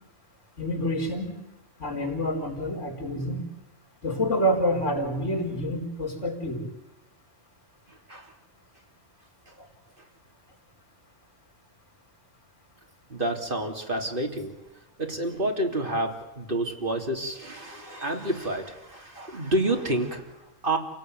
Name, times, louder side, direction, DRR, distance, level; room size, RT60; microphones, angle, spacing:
voice 1, 0.6-1.4 1.8-3.4 4.0-6.6, equal, 75° left, -1 dB, 4.9 m, -27 dB
voice 2, 7.9-8.4 9.5-9.6 10.0-10.1 13.1-14.6 15.0-20.8, right 1 dB, 45° right, 2 dB, 3.7 m, -29 dB
28.5 x 18.0 x 9.4 m, 0.99 s
omnidirectional pair, 1.3 m